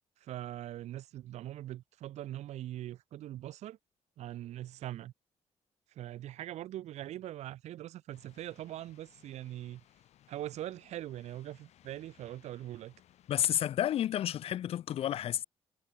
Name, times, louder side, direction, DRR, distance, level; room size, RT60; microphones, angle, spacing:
voice 1, 0.2-3.8 4.2-5.1 5.9-9.8 10.3-12.9, right 13 dB, 85° right, 1.4 m, -42 dB
sound 1, 8.1-13.7, left 12 dB, 80° left, 2.5 m, -64 dB
voice 2, 13.3-15.4, left 11 dB, 60° left, 0.4 m, -31 dB
cardioid pair, 110°, 11 cm